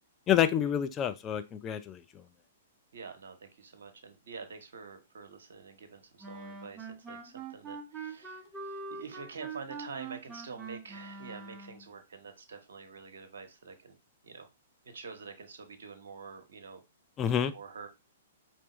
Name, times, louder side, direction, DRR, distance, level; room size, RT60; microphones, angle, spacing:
voice 1, 0.3-2.0 17.2-17.5, left 9 dB, 25° left, 0.5 m, -28 dB
voice 2, 2.9-14.0 14.2-14.5 14.9-16.8 17.5-17.9, right 5 dB, 65° right, 1.0 m, -47 dB
Wind instrument woodwind instrument, 6.2-11.9, right 4 dB, 15° right, 0.8 m, -43 dB
4.6 x 3.0 x 3.0 m
figure-of-eight pair, 115°, 0 cm